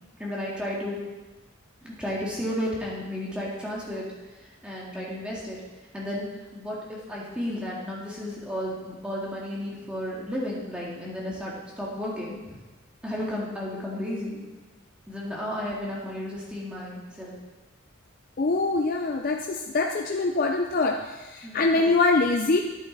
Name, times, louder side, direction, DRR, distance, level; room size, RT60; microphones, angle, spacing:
voice 1, 0.2-1.0 1.8-4.1 4.6-5.6 5.9-6.3 6.5-12.6 13.0-14.4 15.1-17.3 21.4-21.6, left 1 dB, 5° right, -6 dB, 2.0 m, -33 dB
voice 2, 18.4-22.6, left 3 dB, 45° left, 2 dB, 0.5 m, -24 dB
9.7 x 9.4 x 4.0 m, 1.2 s
head